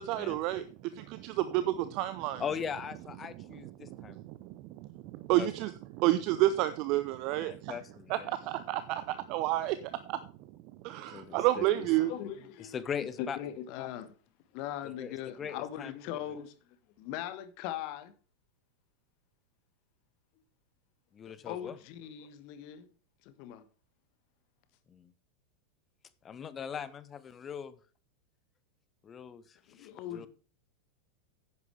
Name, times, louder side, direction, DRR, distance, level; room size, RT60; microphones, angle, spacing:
voice 1, 0.0-2.4 3.4-7.8 8.1-10.2 10.8-12.1, right 15 dB, 40° right, 0.6 m, -31 dB
voice 2, 2.4-4.2 5.4-5.5 7.4-8.3 11.1-11.7 12.7-13.4 15.0-15.9 21.1-21.7 24.9-25.1 26.2-27.7 29.0-29.4 29.8-30.3, left 7 dB, 25° left, 0.8 m, -40 dB
voice 3, 11.7-12.8 13.2-14.2 14.5-16.5 17.0-18.1 21.4-22.9 23.2-23.6 29.7-30.3, left 11 dB, 45° left, 1.3 m, -40 dB
10.5 x 9.5 x 3.3 m
figure-of-eight pair, 90°, 0 cm